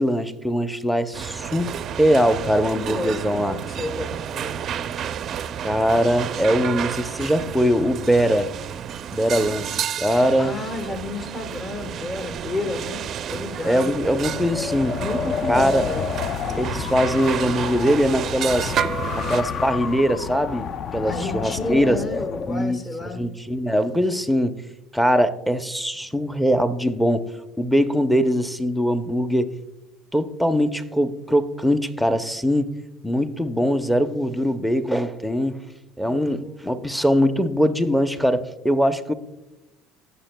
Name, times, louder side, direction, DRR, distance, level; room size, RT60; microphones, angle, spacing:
voice 1, 0.0-3.5 5.6-8.5 9.1-10.5 13.6-15.0 15.5-15.9 16.5-18.7 19.2-22.0 22.5-22.8 23.0-24.6 24.9-27.3 27.6-29.5 30.1-32.7 33.0-35.6 36.0-39.1, equal, ahead, 9 dB, 0.6 m, -21 dB
sound 1, 1.1-19.4, right 9 dB, 45° right, 0.4 m, -31 dB
voice 2, 2.8-4.8 10.4-13.9 15.0-16.1 21.0-23.2 36.0-36.9, left 2 dB, 30° left, 8 dB, 1.1 m, -31 dB
Wind, 13.9-22.6, left 6 dB, 45° left, 0.4 m, -30 dB
18.0 x 7.0 x 2.2 m, 0.98 s
supercardioid pair, 110°, 0 cm